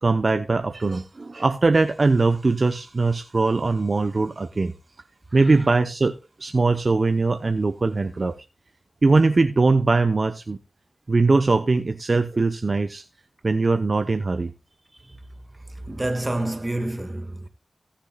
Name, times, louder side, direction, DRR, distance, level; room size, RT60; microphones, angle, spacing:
voice 1, 0.0-4.7 5.3-6.1 6.4-8.3 9.0-10.6 11.1-13.0 13.4-14.5, right 3 dB, 50° right, 0.8 m, -21 dB
voice 2, 15.9-17.5, right 1 dB, 25° right, 1.8 m, -28 dB
18.0 x 7.1 x 2.3 m
cardioid pair, 50°, 0 cm